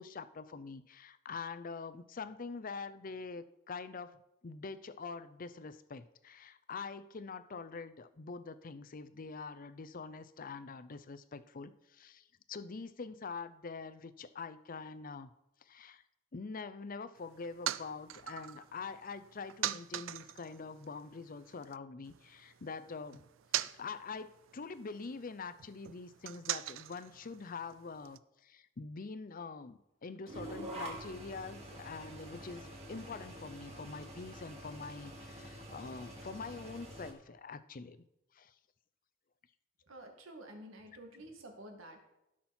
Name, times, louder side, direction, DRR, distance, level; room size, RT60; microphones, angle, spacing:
voice 1, 0.0-4.1 4.4-15.3 15.6-16.0 16.3-23.2 23.7-38.0 38.3-38.5, left 4 dB, 45° left, 14 dB, 0.6 m, -45 dB
sound 1, 17.2-21.8 22.0-28.2, right 12 dB, 70° right, 0.4 m, -43 dB
sound 2, 30.3-37.1, right 1 dB, 30° right, 2.6 m, -47 dB
voice 2, 39.9-42.0, right 1 dB, 90° right, 3 dB, 2.3 m, -50 dB
17.0 x 6.1 x 4.4 m, 0.89 s
head